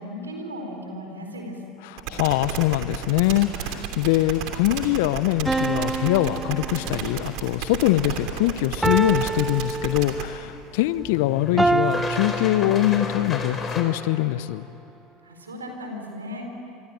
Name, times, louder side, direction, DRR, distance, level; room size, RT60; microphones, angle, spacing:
voice 1, 0.0-1.6 15.2-16.5, equal, 90° right, 3 dB, 4.4 m, -36 dB
voice 2, 1.9-14.7, left 15 dB, 65° left, 15 dB, 0.8 m, -23 dB
sound 1, 2.0-10.2, right 9 dB, 60° right, 2.9 m, -32 dB
sound 2, 2.8-13.8, left 4 dB, 30° left, 4.5 m, -36 dB
sound 3, 5.5-7.3 8.8-10.5 11.6-13.3, right 3 dB, 10° right, 0.9 m, -27 dB
26.5 x 23.0 x 9.3 m, 2.9 s
hypercardioid pair, 75°, 0 cm